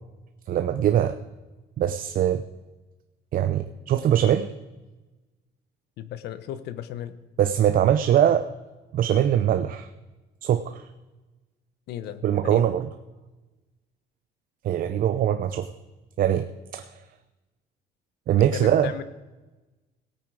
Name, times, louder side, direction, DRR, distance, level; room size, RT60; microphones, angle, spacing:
voice 1, 0.5-1.2 1.8-2.4 3.3-4.5 7.4-8.4 8.9-9.9 10.4-10.8 12.2-12.9 14.6-15.7 16.2-16.5 16.7-16.9 18.3-18.9, right 10 dB, 55° right, 10 dB, 0.7 m, -22 dB
voice 2, 6.0-7.2 11.9-12.6 18.4-19.0, left 11 dB, 75° left, 13 dB, 1.0 m, -35 dB
17.5 x 8.7 x 4.8 m, 1.1 s
cardioid pair, 110°, 17 cm